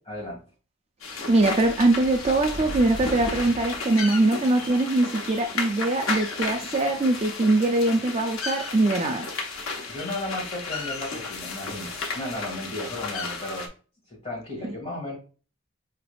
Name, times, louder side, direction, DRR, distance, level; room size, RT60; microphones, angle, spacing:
voice 1, 0.1-0.4 9.9-13.7 14.1-15.2, left 1 dB, 30° left, -1 dB, 1.6 m, -34 dB
sound 1, 1.0-13.7, left 4 dB, 90° left, 0.7 m, -34 dB
sound 2, 1.3-3.9, equal, 55° left, 0.8 m, -38 dB
voice 2, 1.3-9.3 14.6-14.7, right 2 dB, 30° right, 5 dB, 0.3 m, -22 dB
4.8 x 3.3 x 2.2 m, 0.36 s
head